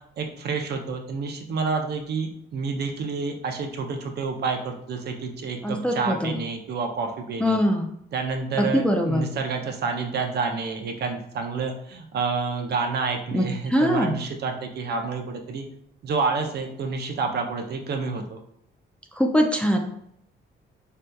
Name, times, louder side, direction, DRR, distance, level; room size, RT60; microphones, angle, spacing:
voice 1, 0.2-7.6 8.1-15.6 16.0-18.4, right 4 dB, 55° right, 4 dB, 0.5 m, -29 dB
voice 2, 5.6-6.4 7.4-7.9 8.6-9.3 13.3-14.2 19.2-19.8, equal, 5° left, 2 dB, 0.3 m, -22 dB
3.2 x 2.7 x 2.2 m, 0.71 s
cardioid pair, 90°, 20 cm